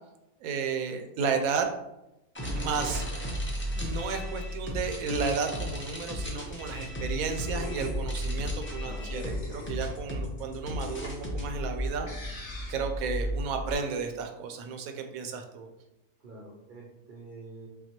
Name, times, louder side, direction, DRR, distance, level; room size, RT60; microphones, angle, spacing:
voice 1, 0.4-1.7 2.5-3.0 3.7-15.7, right 5 dB, 80° right, 5 dB, 1.0 m, -33 dB
sound 1, 2.3-11.4, equal, 15° left, 0.3 m, -34 dB
voice 2, 2.6-3.0 8.8-9.1 16.2-17.7, right 2 dB, 50° right, -3 dB, 0.6 m, -46 dB
sound 2, 5.6-13.8, equal, 55° left, 1.3 m, -38 dB
5.7 x 2.2 x 2.9 m, 0.92 s
omnidirectional pair, 1.5 m